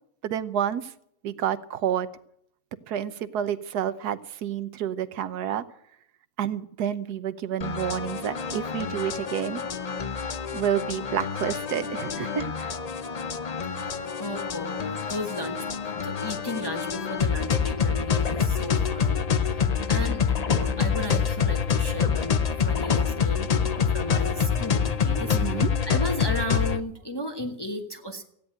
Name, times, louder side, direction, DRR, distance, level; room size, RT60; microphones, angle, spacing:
voice 1, 0.2-0.9 1.2-2.1 2.9-5.6 6.4-9.6 10.5-12.7 25.3-25.7, right 9 dB, 90° right, 13 dB, 1.4 m, -29 dB
sound 1, 7.6-26.8, left 6 dB, 50° left, 0.5 m, -26 dB
voice 2, 13.6-15.7 16.0-28.2, left 1 dB, 15° left, 3 dB, 1.3 m, -34 dB
16.0 x 9.6 x 9.0 m, 0.71 s
omnidirectional pair, 1.6 m